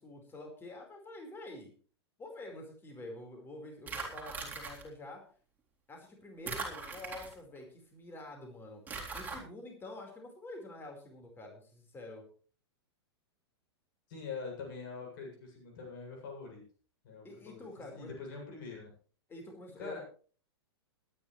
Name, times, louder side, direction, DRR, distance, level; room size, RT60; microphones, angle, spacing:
voice 1, 0.0-1.7 2.2-5.2 5.9-8.8 9.1-12.2 17.2-18.1 19.3-20.0, left 2 dB, 15° left, 2 dB, 4.7 m, -47 dB
sound 1, 3.9-4.8 6.5-7.6 8.9-9.4, right 4 dB, 10° right, 3.8 m, -40 dB
voice 2, 14.1-16.6 17.0-18.9 19.8-20.0, left 4 dB, 50° left, 0 dB, 7.6 m, -44 dB
22.0 x 10.5 x 3.3 m, 0.42 s
figure-of-eight pair, 100°, 14 cm